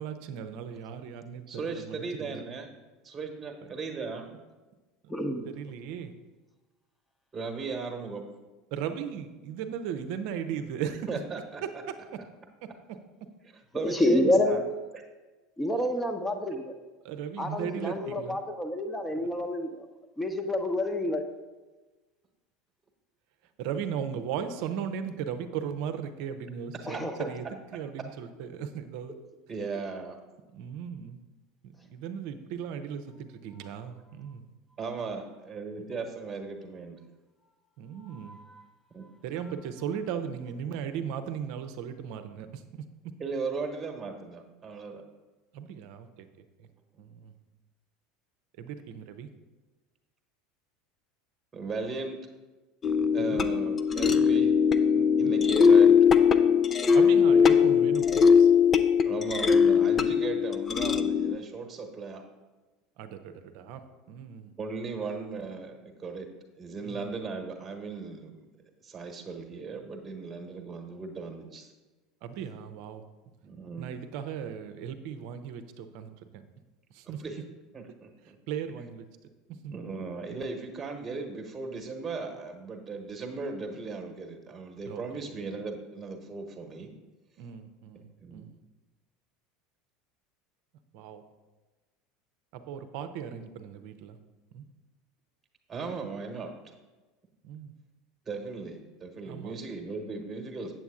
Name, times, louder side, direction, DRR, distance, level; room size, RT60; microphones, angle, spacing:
voice 1, 0.0-2.4 3.6-3.7 5.4-6.1 8.7-11.1 12.6-12.7 17.0-18.4 19.2-19.3 23.6-27.4 27.7-29.1 30.5-31.2 31.6-34.4 37.8-38.4 39.2-42.8 45.5-46.3 46.6-46.7 47.0-47.3 48.6-49.3 53.2-53.5 55.2-55.3 56.9-58.5 63.0-64.5 66.8-67.1 72.2-73.0 73.8-76.4 76.9-77.2 78.5-79.1 79.6-79.7 84.9-85.2 87.4-88.6 90.9-91.2 92.5-94.2 94.5-94.6 97.4-97.7 99.2-99.5, right 8 dB, 55° right, 9 dB, 0.7 m, -37 dB
voice 2, 1.5-2.7 3.0-4.3 7.3-8.2 11.1-12.1 13.4-14.6 27.2-27.3 29.5-30.2 34.8-37.0 38.9-39.3 43.2-45.0 51.5-52.2 53.1-54.5 54.9-56.0 59.0-62.2 64.6-66.3 66.6-68.5 68.8-71.7 73.4-74.2 77.1-77.4 77.7-78.4 78.8-78.9 79.7-86.9 88.2-88.5 95.7-96.5 98.2-100.7, right 4 dB, 20° right, 3 dB, 1.3 m, -37 dB
voice 3, 5.1-5.5 13.8-14.6 15.6-16.7 17.4-19.9 20.2-21.2 26.9-27.3, left 1 dB, 10° left, 6 dB, 0.9 m, -28 dB
sound 1, 52.8-61.4, left 6 dB, 30° left, 0.5 m, -21 dB
8.2 x 7.6 x 3.7 m, 1.2 s
figure-of-eight pair, 75°, 0 cm